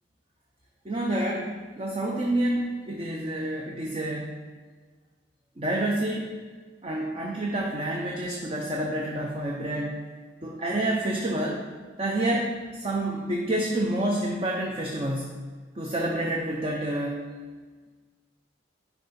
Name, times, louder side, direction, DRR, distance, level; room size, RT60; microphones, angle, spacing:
voice 1, 0.8-4.4 5.6-6.3 6.8-10.0 10.4-11.7 12.0-15.4 15.8-17.3, right 1 dB, 30° right, -1 dB, 0.6 m, -28 dB
10.0 x 4.7 x 4.3 m, 1.5 s
head